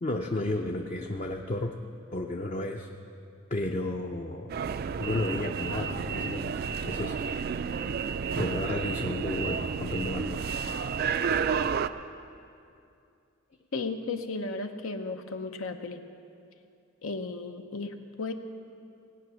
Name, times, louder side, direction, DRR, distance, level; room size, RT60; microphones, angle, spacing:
voice 1, 0.0-1.7 2.1-2.9 3.5-4.5 5.0-7.2 8.4-10.5, left 2 dB, 35° left, 2 dB, 0.5 m, -32 dB
sound 1, 4.5-11.9, right 6 dB, 45° right, 0.3 m, -31 dB
voice 2, 13.7-16.0 17.0-18.3, left 3 dB, 80° left, 6 dB, 0.8 m, -34 dB
18.0 x 8.6 x 6.2 m, 2.5 s
head